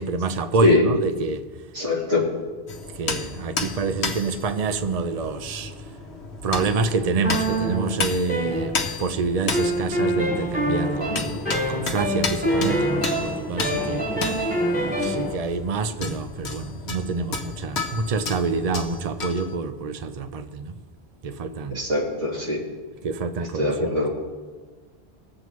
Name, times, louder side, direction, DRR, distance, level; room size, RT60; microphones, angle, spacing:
voice 1, 0.0-1.4 3.0-5.9 6.4-11.4 11.7-14.0 15.0-20.7 21.2-21.8 23.0-24.1, right 4 dB, 40° right, 9 dB, 0.6 m, -27 dB
voice 2, 1.7-2.3 21.7-22.6 23.5-24.1, left 2 dB, 85° right, -5 dB, 3.0 m, -22 dB
sound 1, 2.7-19.6, left 4 dB, 90° left, 1.2 m, -33 dB
sound 2, 7.2-9.1 9.5-15.3, right 1 dB, 10° left, 4.1 m, -25 dB
21.0 x 7.6 x 3.1 m, 1.4 s
omnidirectional pair, 1.1 m